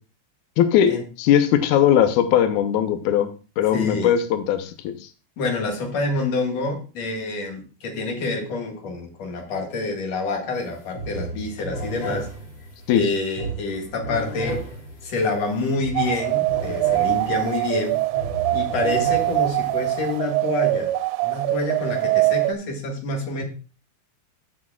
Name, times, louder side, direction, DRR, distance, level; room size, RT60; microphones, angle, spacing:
voice 1, 0.6-3.3 3.6-4.9 12.9-13.0, left 10 dB, 70° left, 8 dB, 1.9 m, -19 dB
voice 2, 3.7-4.1 5.4-12.3 12.9-14.6 15.0-18.0 18.5-20.9 21.2-23.4, left 3 dB, 55° left, 2 dB, 2.5 m, -27 dB
sound 1, 10.5-10.7 10.9-20.2, right 2 dB, 35° left, 2.8 m, -34 dB
sound 2, 16.0-22.5, right 18 dB, 80° right, 2.2 m, -23 dB
15.0 x 6.5 x 2.3 m, 0.33 s
omnidirectional pair, 4.3 m